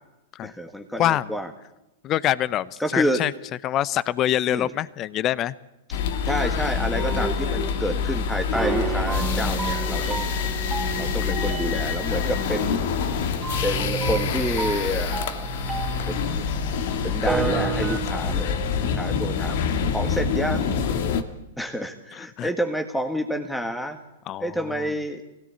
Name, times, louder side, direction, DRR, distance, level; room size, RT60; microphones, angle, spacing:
voice 1, 0.4-1.5 2.8-3.2 4.5-4.7 6.2-10.4 11.0-12.9 13.6-15.7 16.1-16.5 17.0-18.6 18.9-19.6 19.9-20.7 21.6-24.0 24.4-25.2, equal, 5° left, 5 dB, 1.8 m, -29 dB
voice 2, 1.0-1.3 2.0-3.3 3.6-5.5 22.1-22.5 24.3-24.5, left 12 dB, 35° left, 20 dB, 0.7 m, -25 dB
sound 1, 5.9-21.2, left 6 dB, 60° left, 2.1 m, -26 dB
sound 2, 7.0-8.1 8.5-16.6 17.1-18.0, right 5 dB, 15° right, 4.2 m, -31 dB
23.5 x 17.5 x 8.5 m, 0.94 s
hypercardioid pair, 105°, 0 cm